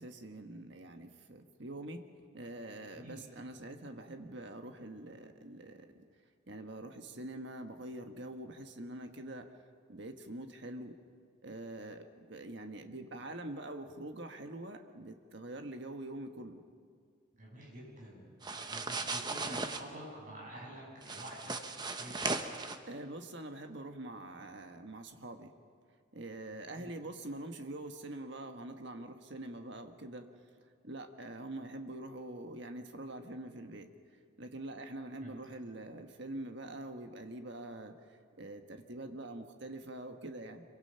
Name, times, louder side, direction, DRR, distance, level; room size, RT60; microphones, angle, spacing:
voice 1, 0.0-2.1 2.3-6.0 6.5-9.5 9.9-11.0 11.4-16.6 22.9-25.5 26.1-30.3 30.8-33.9 34.4-37.9 38.4-40.6, right 1 dB, 60° right, 5 dB, 1.5 m, -45 dB
voice 2, 17.3-22.4 26.8-26.9 35.2-35.4, right 1 dB, 40° right, -3 dB, 7.7 m, -49 dB
sound 1, 18.4-19.8 21.0-22.8, right 3 dB, 20° right, 1.0 m, -37 dB
26.0 x 24.0 x 5.8 m, 2.1 s
head